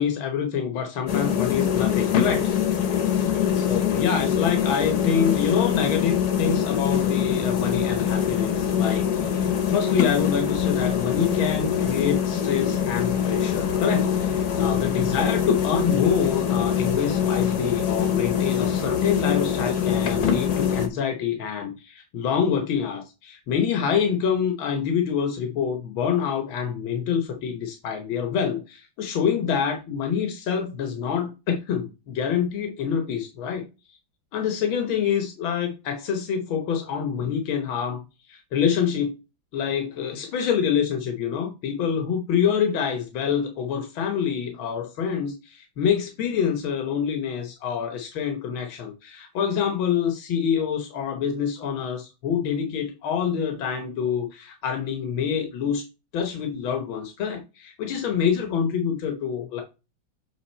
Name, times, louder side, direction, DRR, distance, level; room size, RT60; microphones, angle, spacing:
voice 1, 0.0-2.5 3.7-33.6 34.3-38.0 38.3-39.1 39.5-55.8 56.1-59.6, left 7 dB, 85° left, 1.9 m, -26 dB
sound 1, 1.1-20.9, left 8 dB, 55° left, 1.4 m, -24 dB
7.8 x 3.6 x 4.3 m
omnidirectional pair, 2.1 m